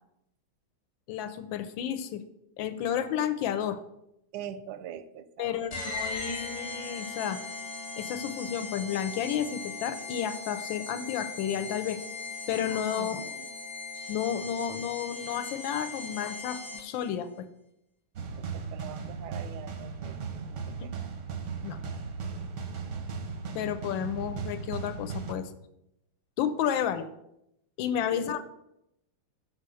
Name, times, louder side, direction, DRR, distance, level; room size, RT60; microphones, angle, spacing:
voice 1, 1.1-2.2 2.6-3.8 5.4-7.4 8.0-12.0 12.5-13.2 14.1-17.5 21.6-21.8 23.5-25.5 26.4-27.1 27.8-28.4, left 9 dB, 75° left, 11 dB, 1.3 m, -31 dB
voice 2, 4.3-5.8 13.0-13.5 18.4-20.2 20.7-21.1 28.1-28.4, right 9 dB, 85° right, 12 dB, 1.4 m, -43 dB
sound 1, 5.7-17.1, left 3 dB, 40° left, 1.3 m, -39 dB
sound 2, 18.2-25.3, right 5 dB, 65° right, 0.7 m, -37 dB
6.4 x 4.7 x 6.8 m, 0.82 s
omnidirectional pair, 2.2 m